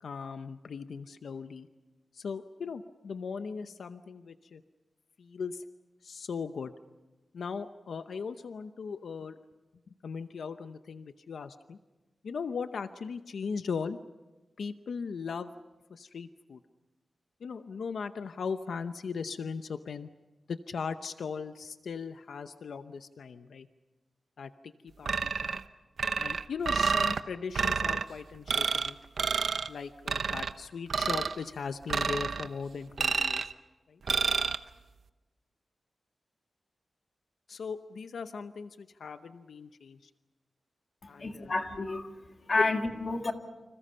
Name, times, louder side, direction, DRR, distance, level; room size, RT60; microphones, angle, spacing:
voice 1, 0.0-1.7 2.1-4.6 5.2-5.6 6.0-6.7 7.3-9.4 10.0-11.8 12.2-14.0 14.6-15.5 15.9-16.6 17.4-20.1 20.5-23.7 24.4-25.6 26.2-29.0 29.7-33.4 33.9-34.0 37.5-40.1 41.1-41.5 42.6-42.7, left 5 dB, 85° left, 9 dB, 0.8 m, -38 dB
sound 1, 25.1-25.6 26.0-27.2 27.5-28.0 28.5-28.9 29.2-29.7 30.1-30.5 30.9-31.4 31.9-32.5 33.0-33.5 34.1-34.6, right 5 dB, 65° right, 0.8 m, -29 dB
voice 2, 41.0-43.3, left 3 dB, 35° left, 5 dB, 1.9 m, -31 dB
29.5 x 26.5 x 5.6 m, 1.2 s
wide cardioid pair, 180°, 0 cm